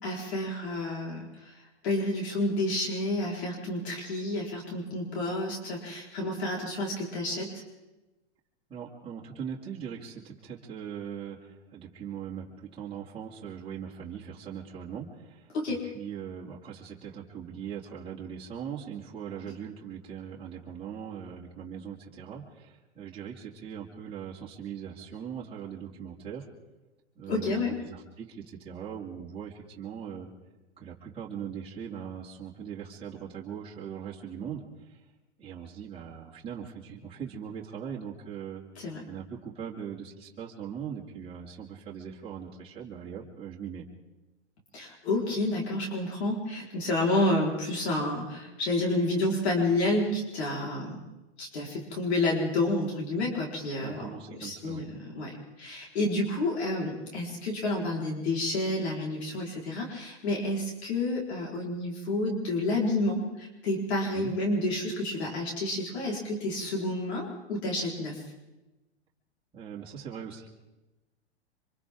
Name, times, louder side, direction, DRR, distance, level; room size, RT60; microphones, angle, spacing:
voice 1, 0.0-7.6 15.5-15.8 19.4-19.5 27.3-27.8 38.8-39.0 44.7-51.0 51.4-54.1 54.4-68.2, left 2 dB, 65° left, -2 dB, 4.7 m, -30 dB
voice 2, 8.7-26.4 27.2-30.3 30.8-35.0 35.4-43.8 53.8-54.8 64.1-64.3 69.5-70.5, right 8 dB, 15° right, -6 dB, 2.7 m, -40 dB
27.5 x 25.5 x 3.8 m, 1.1 s
hypercardioid pair, 135°, 35 cm